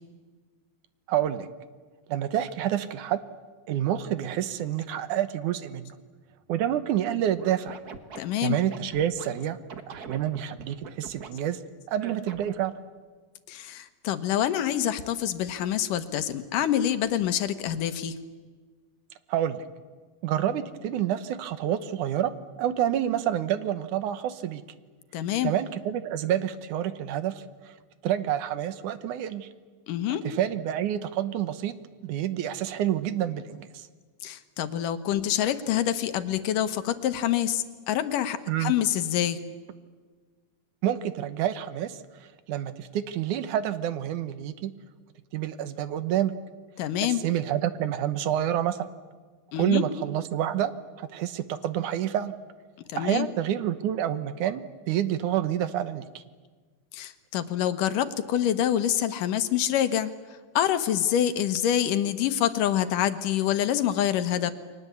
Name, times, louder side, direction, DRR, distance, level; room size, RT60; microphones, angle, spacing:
voice 1, 1.1-1.5 2.1-3.2 3.7-6.0 6.5-7.8 8.4-9.6 9.9-11.6 11.9-12.7 19.3-19.6 20.2-22.3 22.6-24.6 25.4-27.7 28.0-29.5 30.2-31.7 32.0-33.9 38.5-38.7 40.8-42.0 42.5-44.7 45.3-46.3 47.0-48.9 49.6-50.7 51.0-52.3 53.0-56.2, right 11 dB, 75° right, 12 dB, 2.5 m, -28 dB
Scratching (performance technique), 7.4-9.3 9.7-11.3 12.0-12.6, right 6 dB, 50° right, 1.2 m, -42 dB
voice 2, 8.2-8.6 13.5-18.2 25.1-25.5 29.9-30.2 34.2-39.4 46.8-47.2 49.5-49.9 52.9-53.3 56.9-60.1 60.5-64.5, left 11 dB, 85° left, 11 dB, 2.8 m, -26 dB
30.0 x 23.0 x 8.4 m, 1.4 s
omnidirectional pair, 3.7 m